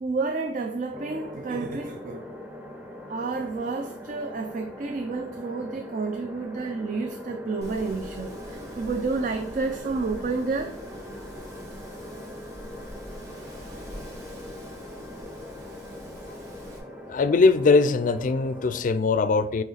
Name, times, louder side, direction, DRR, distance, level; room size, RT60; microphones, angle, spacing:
voice 1, 0.0-2.3 3.1-10.8, right 3 dB, 50° right, 0.4 m, -30 dB
sound 1, 0.9-18.8, left 1 dB, 5° right, 0.8 m, -41 dB
Wind, 7.6-16.8, equal, 65° right, 2.2 m, -44 dB
voice 2, 17.1-19.6, left 4 dB, 50° left, 0.4 m, -21 dB
8.8 x 3.0 x 4.1 m
head